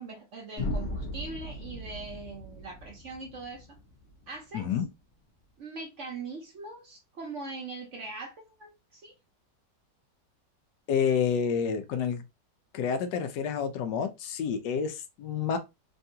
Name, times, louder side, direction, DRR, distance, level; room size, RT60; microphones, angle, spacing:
voice 1, 0.0-3.7 4.3-4.7 5.6-9.1, right 3 dB, 55° right, 0.9 m, -41 dB
sound 1, 0.6-4.5, left 1 dB, 45° left, 1.0 m, -37 dB
voice 2, 4.5-4.9 10.9-12.2 12.7-15.6, left 7 dB, 80° left, 1.2 m, -29 dB
3.4 x 2.3 x 2.7 m
omnidirectional pair, 1.9 m